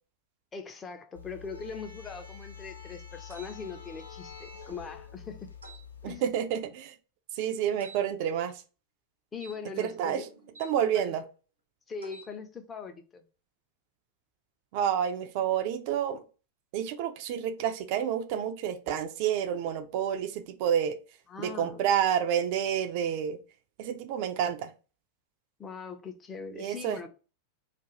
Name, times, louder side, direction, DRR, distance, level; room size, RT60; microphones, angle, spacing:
voice 1, 0.5-5.5 6.0-6.2 9.3-10.3 10.9-11.2 11.9-13.2 21.3-21.8 25.6-27.1, left 5 dB, 20° left, 0.5 m, -41 dB
sound 1, 1.1-6.2, left 6 dB, 80° left, 0.5 m, -46 dB
sound 2, 3.3-3.6 5.6-5.8 7.8-8.0 9.3-10.7 12.0-12.3, right 3 dB, 75° right, 0.8 m, -51 dB
voice 2, 6.0-6.9 7.4-8.6 9.8-10.2 10.6-11.2 14.7-16.2 16.7-21.0 21.4-23.4 23.8-24.7 26.5-27.1, right 9 dB, 45° right, 0.4 m, -29 dB
2.5 x 2.2 x 3.0 m
figure-of-eight pair, 90°, 0 cm